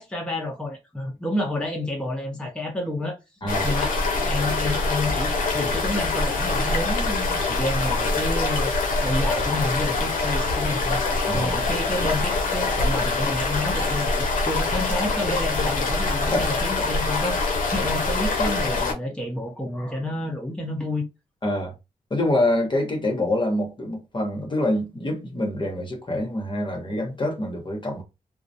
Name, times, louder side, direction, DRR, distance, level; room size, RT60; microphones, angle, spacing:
voice 1, 0.0-3.2 3.5-3.9 4.3-8.7 9.0-11.0 11.3-21.1, left 1 dB, 5° left, 0.7 m, -29 dB
voice 2, 3.4-3.7 11.3-11.5 16.3-16.4 21.4-21.7 22.1-28.0, left 1 dB, 35° left, 0.9 m, -25 dB
sound 1, 3.5-18.9, left 3 dB, 85° left, 0.5 m, -24 dB
2.3 x 2.0 x 2.7 m
cardioid pair, 60°, 14 cm